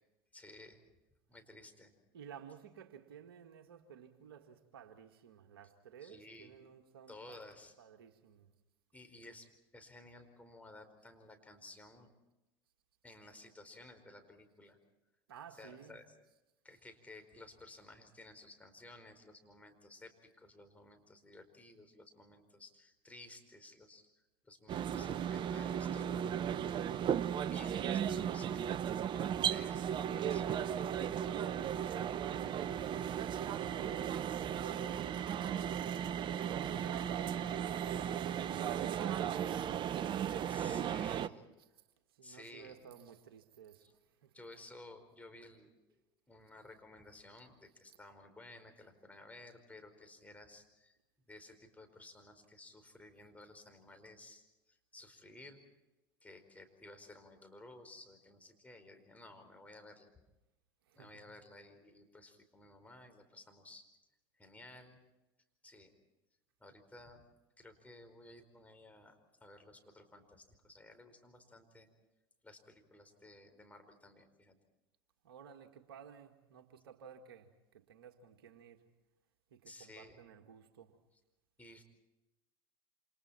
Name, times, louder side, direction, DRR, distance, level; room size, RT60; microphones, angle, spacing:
voice 1, 0.3-0.8 1.3-1.9 6.0-6.6 7.1-7.7 8.9-12.1 13.0-14.8 15.5-16.1 16.6-24.0 24.4-26.4 27.4-28.8 29.3-30.6 40.5-41.5 42.2-42.8 43.8-43.9 44.3-45.7 46.3-51.0 51.3-55.6 56.2-60.1 60.9-63.9 64.4-65.0 65.6-65.9 66.6-67.2 67.6-71.9 72.4-74.5 79.6-80.2 81.6-81.8, left 2 dB, 10° left, 4.8 m, -55 dB
voice 2, 2.1-7.4 7.8-8.5 15.3-16.0 30.8-35.9 36.3-40.9 41.6-41.8 42.1-44.5 47.9-48.0 60.9-61.2 75.2-78.8 79.5-81.0, right 8 dB, 75° right, 2.0 m, -54 dB
sound 1, 24.7-41.3, right 9 dB, 40° right, 0.9 m, -36 dB
28.5 x 27.5 x 4.4 m
hypercardioid pair, 75°, 12 cm